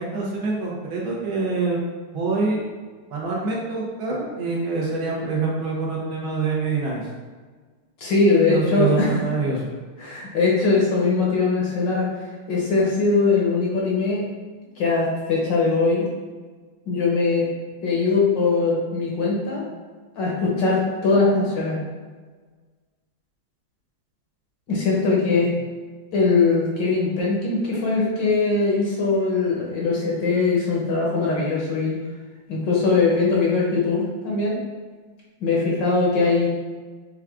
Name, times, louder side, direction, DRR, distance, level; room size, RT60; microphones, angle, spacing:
voice 1, 0.0-1.8 2.1-2.6 3.1-7.0 8.5-9.7, right 4 dB, 70° right, -4 dB, 1.7 m, -25 dB
voice 2, 8.0-9.1 10.0-12.1 12.5-14.2 14.8-16.1 16.9-17.5 17.8-19.7 20.2-21.8 24.7-25.5 26.1-32.0 32.5-34.6 35.4-36.5, left 3 dB, 60° left, -4 dB, 1.5 m, -21 dB
5.9 x 2.4 x 3.5 m, 1.4 s
omnidirectional pair, 2.4 m